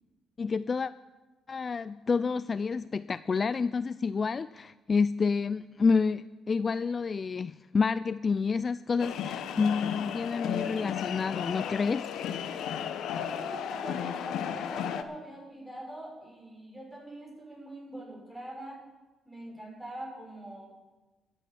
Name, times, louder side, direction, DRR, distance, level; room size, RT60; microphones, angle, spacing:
voice 1, 0.4-0.9 1.5-12.1, left 5 dB, 40° left, 16 dB, 0.3 m, -29 dB
sound 1, 9.0-15.0, left 8 dB, 80° left, 0.9 m, -34 dB
voice 2, 13.1-18.8 19.2-20.7, right 1 dB, ahead, -3 dB, 6.0 m, -43 dB
13.0 x 9.0 x 7.7 m, 1.2 s
cardioid pair, 90°, 0 cm